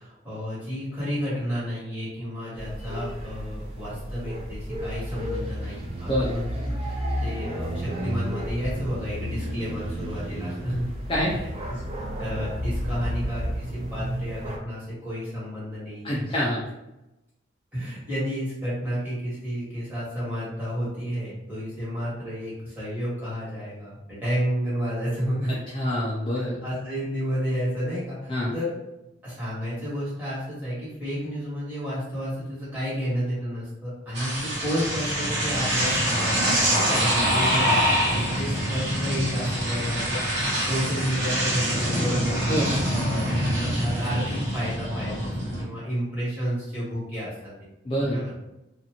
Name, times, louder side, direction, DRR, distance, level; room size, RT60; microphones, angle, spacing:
voice 1, 0.0-10.9 11.3-11.5 12.2-16.2 16.6-16.7 17.7-25.5 26.6-28.7 29.2-40.2 40.6-42.4 42.9-45.3 45.6-47.5 48.1-48.3, equal, 10° right, -10 dB, 1.4 m, -31 dB
sound 1, 2.6-14.6, equal, 30° right, 0.5 m, -32 dB
voice 2, 16.0-16.6 25.7-26.6 28.3-28.5 42.5-42.7 47.9-48.2, equal, 25° left, -6 dB, 0.4 m, -25 dB
sound 2, 34.1-45.6, equal, 70° right, 1.1 m, -25 dB
2.6 x 2.4 x 2.8 m, 0.93 s
head